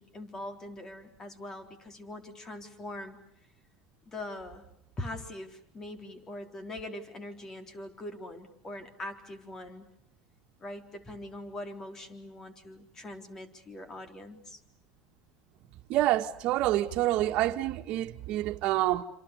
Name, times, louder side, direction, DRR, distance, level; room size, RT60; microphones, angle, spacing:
voice 1, 0.0-3.2 4.1-4.7 5.0-9.9 10.6-14.6, left 1 dB, 20° left, 3.7 m, -42 dB
voice 2, 15.9-19.0, right 15 dB, 50° right, 2.1 m, -27 dB
28.0 x 27.0 x 6.7 m
supercardioid pair, 145°, 2 cm